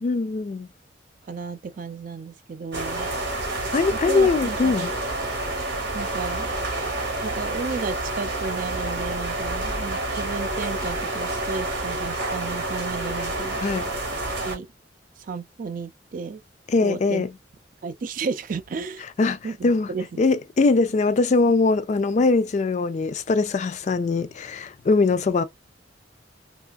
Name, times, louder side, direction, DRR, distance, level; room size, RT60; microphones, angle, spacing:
voice 1, 0.0-0.7 3.7-4.9 13.6-13.9 16.7-17.3 19.2-19.9 20.2-25.4, left 3 dB, 40° left, 0.3 m, -22 dB
voice 2, 1.3-3.1 3.9-4.8 5.9-6.5 7.2-13.6 14.4-14.7 15.2-16.4 16.8-17.3 17.8-19.0 19.4-20.1, right 4 dB, 45° right, 0.3 m, -33 dB
sound 1, 2.7-14.6, right 2 dB, 60° right, 1.1 m, -28 dB
3.3 x 2.4 x 2.3 m
head